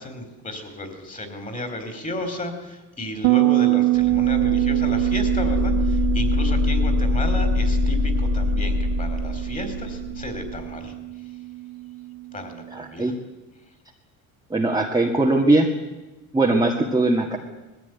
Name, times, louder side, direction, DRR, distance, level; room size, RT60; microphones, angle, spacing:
voice 1, 0.0-10.9 12.3-13.1, left 1 dB, 20° left, 7 dB, 4.2 m, -33 dB
Bass guitar, 3.2-12.6, right 20 dB, 85° right, 0.7 m, -25 dB
sound 1, 4.0-10.6, left 3 dB, 55° left, 3.1 m, -24 dB
voice 2, 12.7-13.1 14.5-15.7 16.3-17.4, right 2 dB, 10° right, -1 dB, 1.9 m, -20 dB
20.0 x 14.5 x 9.5 m, 1.1 s
cardioid pair, 115°, 38 cm